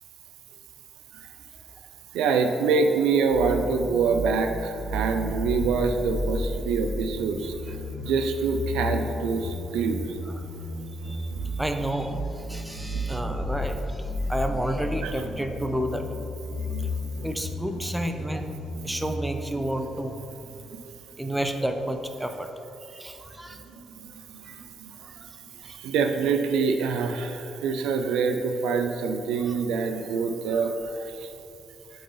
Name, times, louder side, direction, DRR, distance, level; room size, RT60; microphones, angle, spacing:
voice 1, 2.1-10.1 11.3-11.4 12.8-13.0 15.0-15.1 16.6-17.0 20.7-20.8 23.5-24.1 24.3-25.0 25.6-31.3, right 5 dB, 90° right, 6 dB, 0.4 m, -26 dB
sound 1, 3.3-19.3, left 1 dB, 80° left, 1.5 m, -33 dB
voice 2, 11.6-16.1 17.2-18.5 18.8-20.7 21.2-22.5 22.9-23.6 25.0-25.3 25.6-25.8 29.5-29.6, right 1 dB, 5° right, 5 dB, 0.5 m, -31 dB
7.7 x 3.8 x 3.9 m, 2.8 s
cardioid pair, 90°, 0 cm